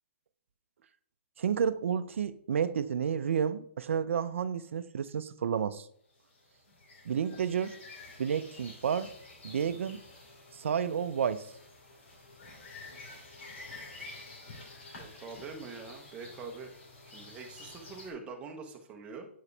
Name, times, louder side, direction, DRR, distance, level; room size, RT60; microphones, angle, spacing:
voice 1, 1.4-5.9 7.1-7.7 8.2-9.1 9.4-10.0 10.5-11.4, right 7 dB, 75° right, 11 dB, 0.5 m, -31 dB
sound 1, 6.2-18.1, left 2 dB, 65° left, 2.6 m, -50 dB
voice 2, 15.0-16.7 17.1-19.3, right 4 dB, 15° right, 3 dB, 1.0 m, -44 dB
8.0 x 4.8 x 3.3 m, 0.62 s
hypercardioid pair, 150°, 7 cm